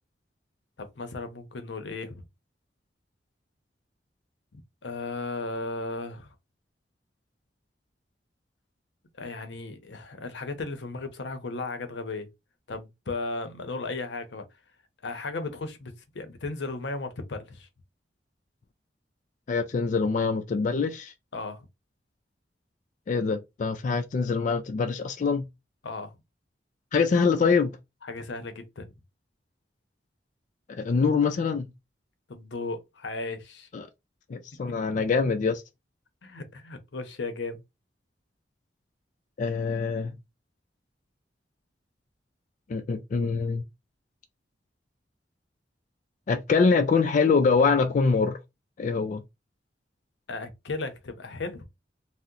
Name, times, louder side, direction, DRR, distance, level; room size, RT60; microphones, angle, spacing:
voice 1, 0.8-2.3 4.5-6.3 9.2-12.3 12.7-14.5 15.0-17.7 21.3-21.7 25.8-26.2 28.0-28.9 32.3-33.7 34.7-34.8 36.2-37.6 50.3-51.6, left 3 dB, 90° left, 0.7 m, -35 dB
voice 2, 19.5-21.1 23.1-25.5 26.9-27.7 30.7-31.7 33.7-33.9 34.3-35.6 39.4-40.1 42.7-43.6 46.3-48.4 48.8-49.2, left 5 dB, 45° left, 0.3 m, -24 dB
2.7 x 2.0 x 3.6 m
head